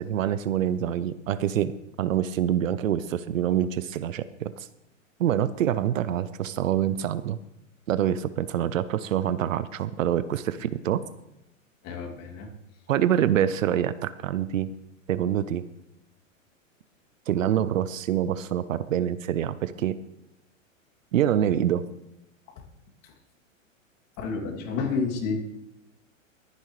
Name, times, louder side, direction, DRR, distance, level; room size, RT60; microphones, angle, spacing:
voice 1, 0.0-1.7 2.0-4.7 5.2-7.4 7.9-11.0 12.9-14.7 15.1-15.6 17.3-19.9 21.1-21.8, right 10 dB, 75° right, 15 dB, 0.8 m, -26 dB
voice 2, 11.8-12.5 23.0-23.1 24.2-25.4, left 4 dB, 40° left, 1 dB, 2.7 m, -30 dB
22.0 x 9.9 x 3.3 m, 0.87 s
hypercardioid pair, 120°, 40 cm